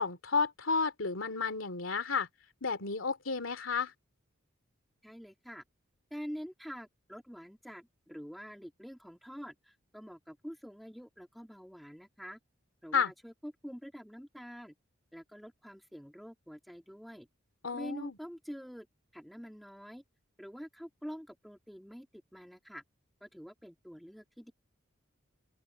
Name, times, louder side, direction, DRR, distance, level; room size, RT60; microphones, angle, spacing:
voice 1, 0.0-2.3 2.6-3.9 12.9-13.1 17.6-18.2, left 5 dB, 75° left, 2.5 m, -32 dB
voice 2, 5.0-5.6 6.1-12.4 12.8-14.7 15.1-17.3 17.7-18.9 19.1-20.0 20.4-22.8 23.2-24.5, equal, ahead, 2.5 m, -46 dB
open air
head